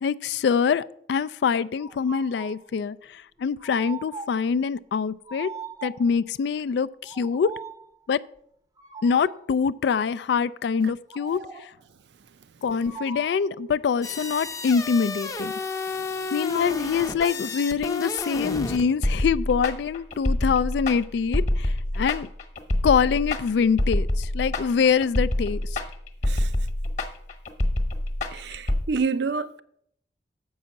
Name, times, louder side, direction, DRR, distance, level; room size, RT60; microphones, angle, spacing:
voice 1, 0.0-5.5 5.8-7.5 8.1-8.2 9.0-11.7 12.6-15.5 16.3-22.3 22.8-25.7, left 6 dB, 65° left, 0.3 m, -24 dB
sound 1, 1.8-2.6 3.6-4.5 5.3-6.2 7.0-7.9 8.8-9.5 11.1-11.8 12.8-13.5, right 4 dB, 20° right, 0.6 m, -40 dB
sound 2, 14.0-18.9, left 3 dB, 20° left, 0.6 m, -32 dB
sound 3, 19.0-28.8, left 1 dB, 40° left, 1.1 m, -26 dB
voice 2, 28.3-29.6, right 4 dB, 65° right, 0.5 m, -28 dB
7.4 x 5.5 x 7.0 m
head